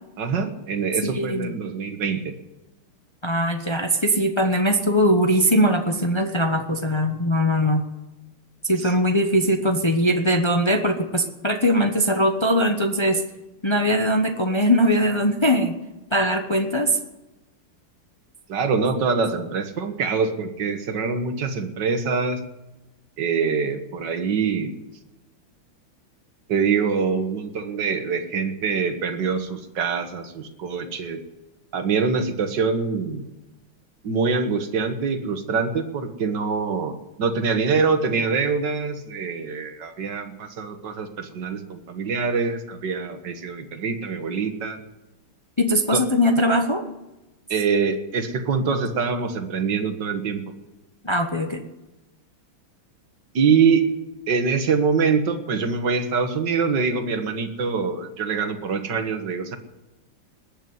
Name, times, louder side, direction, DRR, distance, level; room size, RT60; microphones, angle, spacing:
voice 1, 0.2-2.2 18.5-22.4 23.2-24.7 26.5-31.2 31.7-33.3 34.0-36.9 37.2-44.8 45.9-46.0 47.5-50.4 53.3-53.8 54.3-59.6, right 5 dB, 55° right, 7 dB, 2.0 m, -24 dB
voice 2, 1.0-1.5 3.2-7.8 8.6-13.2 13.6-15.8 16.1-17.0 45.6-46.8 51.0-51.6, equal, 50° left, 5 dB, 0.3 m, -21 dB
20.5 x 7.1 x 9.4 m, 1.0 s
omnidirectional pair, 2.4 m